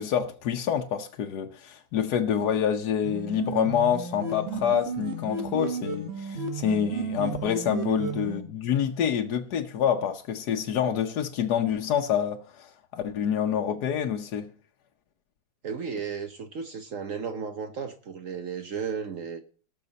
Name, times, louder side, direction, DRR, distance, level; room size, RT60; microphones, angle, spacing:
voice 1, 0.0-14.5, left 8 dB, 80° left, 1.5 m, -27 dB
sound 1, 3.0-8.4, right 3 dB, 40° right, 2.0 m, -33 dB
voice 2, 15.6-19.4, right 6 dB, 60° right, 1.2 m, -34 dB
18.0 x 6.7 x 4.1 m
omnidirectional pair, 1.7 m